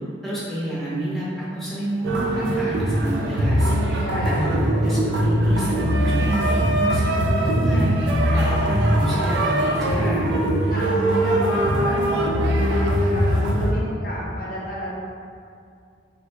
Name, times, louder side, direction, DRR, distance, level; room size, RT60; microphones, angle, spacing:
voice 1, 0.2-3.7 4.1-7.9 8.3-10.3, right 1 dB, ahead, -10 dB, 0.7 m, -29 dB
sound 1, 2.0-13.7, right 1 dB, 70° right, 0.3 m, -21 dB
voice 2, 3.4-4.5 10.7-14.9, equal, 50° left, -6 dB, 0.6 m, -31 dB
3.5 x 2.2 x 2.8 m, 2.4 s
head